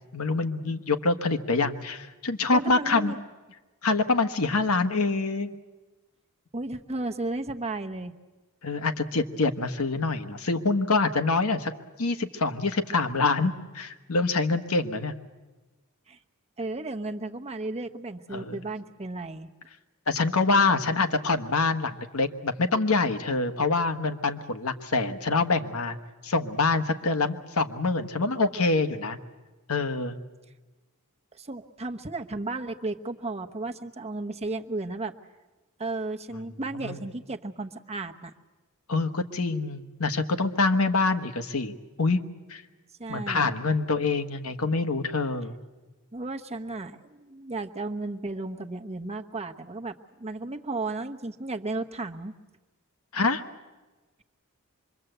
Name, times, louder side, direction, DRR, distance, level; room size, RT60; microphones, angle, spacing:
voice 1, 0.1-3.2 3.8-5.5 8.6-11.7 12.0-15.1 18.3-18.5 20.1-26.0 26.2-29.2 29.7-30.1 36.8-37.0 38.9-41.7 42.0-42.2 42.5-42.6 43.1-45.5 53.1-53.4, left 3 dB, 70° left, 8 dB, 1.3 m, -25 dB
voice 2, 2.5-3.2 6.5-8.1 16.1-16.2 16.6-19.5 31.3-35.1 35.8-38.3 43.0-43.6 46.1-52.3, right 2 dB, 30° right, 4 dB, 1.0 m, -34 dB
25.5 x 23.0 x 8.0 m, 1.2 s
head